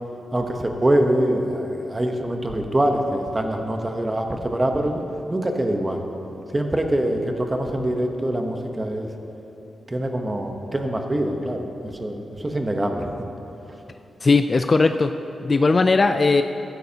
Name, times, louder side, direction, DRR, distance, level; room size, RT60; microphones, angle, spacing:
voice 1, 0.3-5.0 5.3-6.0 6.5-9.1 9.9-13.1, right 1 dB, 20° right, 4 dB, 0.9 m, -24 dB
voice 2, 14.2-15.1 15.4-16.4, left 3 dB, 30° left, 8 dB, 0.3 m, -18 dB
15.0 x 13.0 x 2.8 m, 2.9 s
wide cardioid pair, 140°, 0 cm